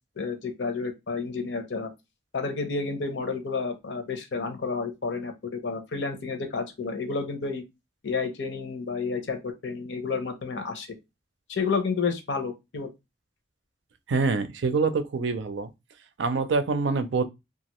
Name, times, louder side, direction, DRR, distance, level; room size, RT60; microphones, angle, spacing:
voice 1, 0.2-1.9 2.3-7.6 8.0-10.9 11.5-12.9, left 4 dB, 85° left, 0.7 m, -30 dB
voice 2, 14.1-15.7 16.2-17.2, right 4 dB, 85° right, 0.5 m, -25 dB
2.8 x 2.4 x 2.9 m
head